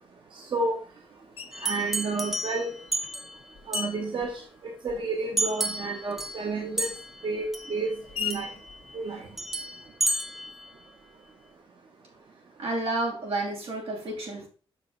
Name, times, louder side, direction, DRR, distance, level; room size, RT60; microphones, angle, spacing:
Screech, 1.4-1.8 2.6-5.3 5.6-9.9, left 8 dB, 90° left, 0.7 m, -41 dB
sound 1, 1.5-3.4 3.7-3.9 5.4-6.5 6.8-7.2 7.5-7.8 8.3-8.8 9.4-10.7, right 1 dB, 5° right, 0.8 m, -31 dB
voice 1, 1.6-2.7 3.7-4.3 4.6-6.9 7.2-7.9 8.2-8.5 8.9-9.2, right 3 dB, 55° right, 1 dB, 1.2 m, -30 dB
voice 2, 12.6-14.5, right 2 dB, 85° right, -2 dB, 2.9 m, -30 dB
6.5 x 5.6 x 3.9 m, 0.38 s
wide cardioid pair, 105°, 10 cm